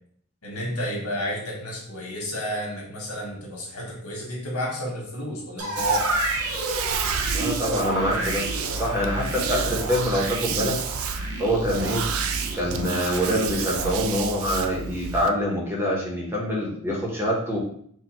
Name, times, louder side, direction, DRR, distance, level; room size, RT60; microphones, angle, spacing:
voice 1, 0.4-6.0 9.7-9.9 11.9-12.1, equal, 85° left, -2 dB, 1.6 m, -32 dB
sound 1, 5.6-13.9, right 2 dB, 90° right, 1.1 m, -30 dB
sound 2, 5.8-15.3, right 6 dB, 70° right, 0.4 m, -31 dB
voice 2, 7.3-8.4 8.7-10.8 11.4-12.1 12.5-17.6, equal, 10° right, -3 dB, 0.9 m, -25 dB
4.4 x 2.4 x 4.4 m, 0.63 s
head